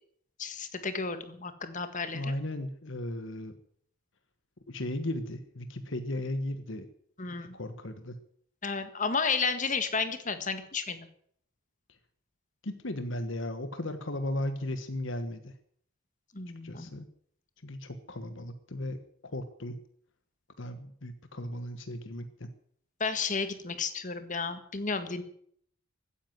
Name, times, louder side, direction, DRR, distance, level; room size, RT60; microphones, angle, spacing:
voice 1, 0.4-2.3 7.2-7.6 8.6-11.1 16.3-16.9 23.0-25.2, left 4 dB, 35° left, 10 dB, 1.7 m, -32 dB
voice 2, 2.1-3.6 4.7-6.9 7.3-8.2 12.6-15.5 16.6-17.1 17.6-19.8 20.6-22.5, left 1 dB, 60° left, 9 dB, 1.3 m, -36 dB
15.5 x 10.0 x 9.3 m, 0.64 s
head